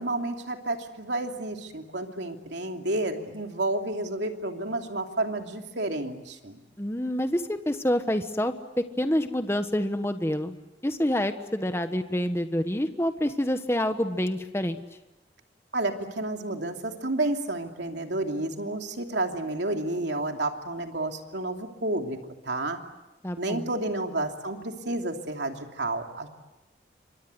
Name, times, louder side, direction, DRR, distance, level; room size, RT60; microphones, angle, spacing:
voice 1, 0.0-6.6 15.7-22.2 22.4-22.8 23.4-26.3, right 2 dB, 80° right, 4 dB, 2.9 m, -30 dB
voice 2, 6.8-10.6 10.8-14.8 23.2-23.7, left 1 dB, 15° left, 8 dB, 1.3 m, -27 dB
29.0 x 25.0 x 8.0 m, 1.0 s
head